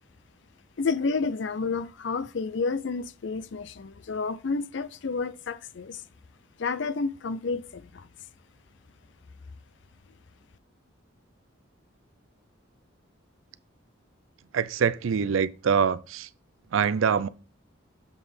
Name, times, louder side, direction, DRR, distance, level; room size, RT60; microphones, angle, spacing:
voice 1, 0.8-6.0 6.6-8.1, left 4 dB, 65° left, 0.5 m, -30 dB
voice 2, 14.5-16.3 16.7-17.3, right 6 dB, 80° right, 0.4 m, -24 dB
7.3 x 4.0 x 4.9 m
head